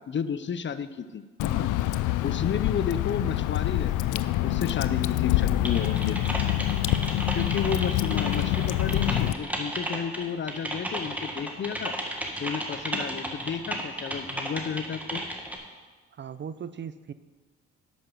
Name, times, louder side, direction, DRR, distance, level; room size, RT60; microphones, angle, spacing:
voice 1, 0.1-1.7 2.2-6.2 7.3-12.0 12.4-15.2, left 7 dB, 40° left, 13 dB, 0.6 m, -32 dB
Water / Drip, 1.4-9.3, left 14 dB, 85° left, 0.5 m, -26 dB
Typing, 5.6-15.6, right 1 dB, 5° right, 1.6 m, -34 dB
voice 2, 16.1-17.1, right 7 dB, 40° right, 14 dB, 0.5 m, -38 dB
11.0 x 6.0 x 6.8 m, 1.3 s
cardioid pair, 90°, 30 cm